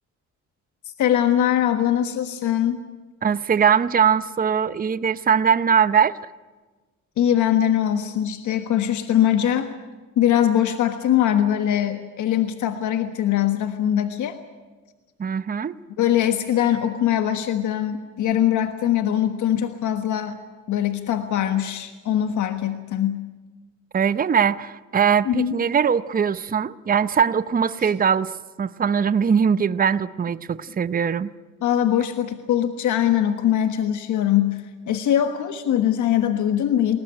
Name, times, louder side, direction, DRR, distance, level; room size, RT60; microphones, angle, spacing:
voice 1, 1.0-2.9 7.2-9.7 10.2-14.4 16.0-20.4 20.7-23.2 25.2-25.5 27.8-27.9 31.6-37.0, left 10 dB, 75° left, 7 dB, 1.5 m, -22 dB
voice 2, 3.2-6.2 15.2-15.7 23.9-28.3 28.6-31.3, right 7 dB, 30° right, 14 dB, 0.7 m, -21 dB
22.0 x 18.5 x 10.0 m, 1.3 s
cardioid pair, 90°, 30 cm